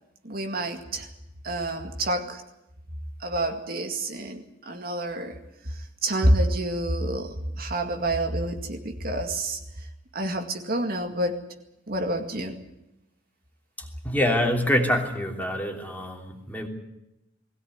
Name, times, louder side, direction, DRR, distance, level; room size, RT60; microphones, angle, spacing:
voice 1, 0.2-1.1 1.4-2.4 3.2-5.4 5.6-9.9 10.1-11.4 11.9-12.6, right 1 dB, 50° right, 4 dB, 2.1 m, -28 dB
voice 2, 14.0-16.7, left 1 dB, 10° left, 2 dB, 3.1 m, -25 dB
20.5 x 17.5 x 9.6 m, 0.89 s
head